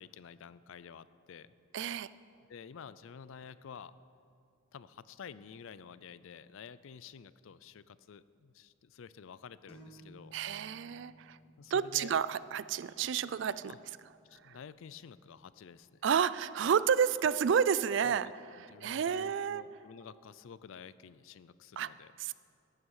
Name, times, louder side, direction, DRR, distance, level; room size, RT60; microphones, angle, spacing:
voice 1, 0.0-1.5 2.5-3.9 4.7-10.4 11.6-12.1 13.7-13.8 14.2-16.0 18.0-18.3 18.7-22.1, left 6 dB, 70° left, 16 dB, 0.4 m, -50 dB
voice 2, 1.7-2.1 10.3-11.4 11.7-13.7 14.4-14.6 16.0-19.6 21.8-21.9 22.2-22.3, right 7 dB, 60° right, 17 dB, 0.3 m, -30 dB
sound 1, 9.7-17.2, right 1 dB, 25° left, 1.6 m, -61 dB
14.5 x 11.5 x 4.8 m, 2.5 s
head